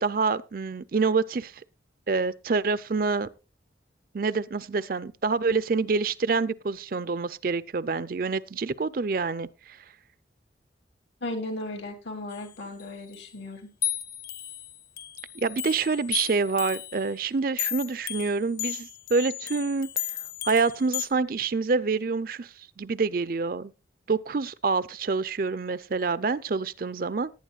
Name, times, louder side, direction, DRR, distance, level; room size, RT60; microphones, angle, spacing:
voice 1, 0.0-1.5 2.1-3.3 4.1-9.8 15.3-20.0 20.5-23.7 24.1-27.3, right 4 dB, 50° right, 0.5 m, -27 dB
voice 2, 11.2-13.7, left 1 dB, 90° left, 2.8 m, -36 dB
sound 1, 12.3-12.8 13.1-13.2 13.8-17.0 17.6-21.1, left 12 dB, 50° left, 1.0 m, -34 dB
18.5 x 9.6 x 2.4 m
head